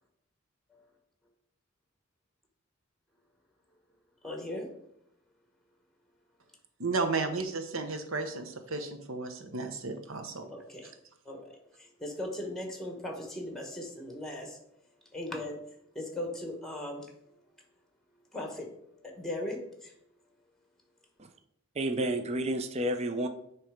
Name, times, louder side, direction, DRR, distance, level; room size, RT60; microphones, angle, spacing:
voice 1, 4.2-4.7 10.5-10.9 11.2-14.6 15.1-15.6 15.9-17.1 18.3-18.7 19.0-19.9, left 1 dB, ahead, 1.3 m, -38 dB
voice 2, 6.8-10.5, right 3 dB, 75° right, 0.9 m, -33 dB
voice 3, 21.7-23.3, right 1 dB, 30° right, 0.5 m, -30 dB
9.4 x 3.2 x 5.0 m
head